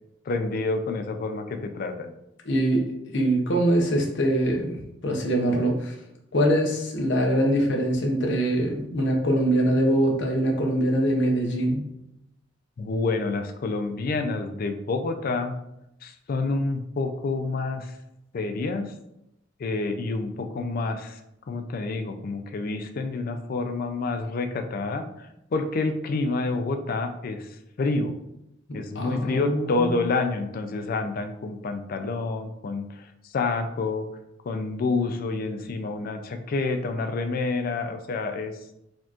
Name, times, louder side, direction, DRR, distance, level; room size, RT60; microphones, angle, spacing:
voice 1, 0.3-2.1 12.8-15.6 16.0-17.9 18.3-18.9 19.6-21.2 21.5-27.5 27.8-28.1 28.7-33.1 33.3-34.1 34.4-38.5, left 3 dB, 50° left, 6 dB, 0.3 m, -28 dB
voice 2, 2.5-2.9 3.1-4.8 5.0-5.9 6.3-11.8 28.9-29.9, right 1 dB, 65° left, 1 dB, 0.7 m, -23 dB
4.2 x 2.9 x 2.4 m, 0.85 s
head